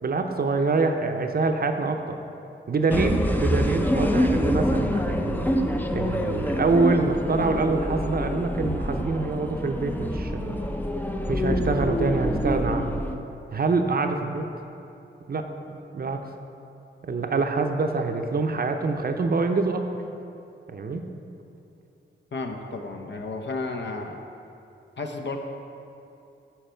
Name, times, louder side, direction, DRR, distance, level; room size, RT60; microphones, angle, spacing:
voice 1, 0.0-2.2 2.7-5.5 5.9-10.6 11.3-13.0 13.5-14.5 15.3-16.2 17.0-19.9 20.7-21.1, right 3 dB, 50° right, 5 dB, 0.6 m, -25 dB
sound 1, 2.9-13.1, equal, 10° left, 0.5 m, -26 dB
voice 2, 22.3-24.2 25.0-25.4, left 3 dB, 60° left, 4 dB, 0.8 m, -32 dB
10.5 x 4.6 x 4.5 m, 2.8 s
wide cardioid pair, 90°, 20 cm